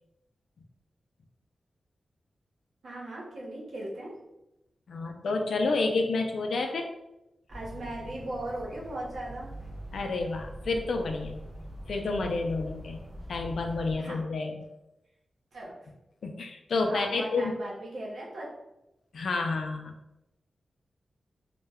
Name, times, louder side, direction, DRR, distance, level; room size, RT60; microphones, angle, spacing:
voice 1, 2.8-4.1 7.5-9.5 14.0-14.2 15.5-15.7 16.8-18.5, right 1 dB, 80° right, -4 dB, 0.8 m, -38 dB
voice 2, 4.9-6.9 9.9-11.4 11.9-13.0 13.3-14.6 16.2-17.5 19.1-19.9, left 3 dB, 80° left, 3 dB, 0.3 m, -29 dB
sound 1, 7.5-14.0, equal, 20° right, 0.6 m, -43 dB
2.2 x 2.1 x 3.4 m, 0.92 s
wide cardioid pair, 155°, 0 cm